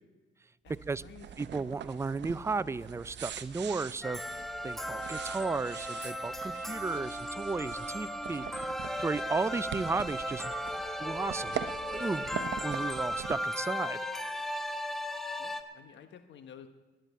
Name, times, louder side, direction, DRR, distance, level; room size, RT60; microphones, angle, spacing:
sound 1, 0.7-13.4, right 9 dB, 60° right, 0.8 m, -43 dB
voice 1, 1.4-8.7 9.0-10.5 11.0-14.0, right 3 dB, 15° right, 17 dB, 0.4 m, -34 dB
sound 2, 4.0-15.6, equal, ahead, 1.1 m, -36 dB
Wind instrument woodwind instrument, 7.7-12.3, left 5 dB, 35° left, 1.4 m, -53 dB
voice 2, 15.4-16.7, left 8 dB, 65° left, 8 dB, 1.2 m, -51 dB
10.5 x 10.0 x 9.0 m, 1.3 s
cardioid pair, 90°, 20 cm